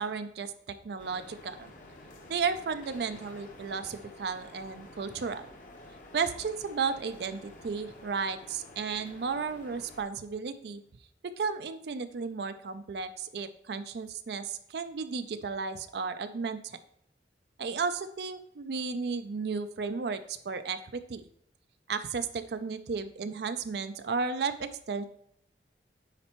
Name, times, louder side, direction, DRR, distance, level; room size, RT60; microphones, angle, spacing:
voice 1, 0.0-1.7 2.3-5.5 6.1-10.8 11.4-16.8 17.6-21.2 21.9-25.1, right 5 dB, 70° right, 10 dB, 0.4 m, -34 dB
sound 1, 1.0-10.0, left 1 dB, 45° left, 1.0 m, -51 dB
9.7 x 4.3 x 3.0 m, 0.71 s
head